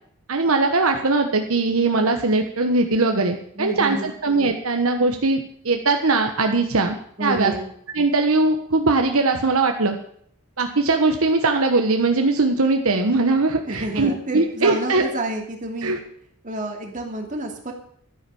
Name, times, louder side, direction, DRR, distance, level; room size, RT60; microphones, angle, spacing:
voice 1, 0.3-7.5 7.9-10.0 10.6-15.0 15.8-16.0, right 3 dB, 70° right, 4 dB, 1.2 m, -20 dB
voice 2, 3.5-4.1 7.2-7.7 13.6-16.0 16.4-17.7, right 1 dB, 35° right, 2 dB, 2.7 m, -29 dB
12.5 x 10.0 x 7.0 m, 0.64 s
head